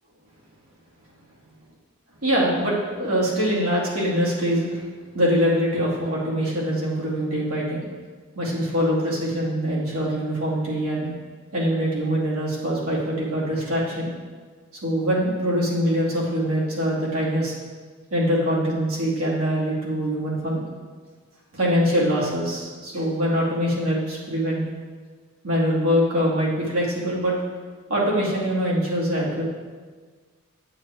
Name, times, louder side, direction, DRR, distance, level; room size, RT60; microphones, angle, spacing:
voice 1, 2.2-4.8 5.1-7.8 8.4-11.1 11.5-14.1 14.8-17.5 18.1-20.7 21.5-24.6 25.4-27.3 27.9-29.4, equal, 80° right, -6 dB, 2.6 m, -23 dB
8.6 x 8.4 x 3.6 m, 1.5 s
head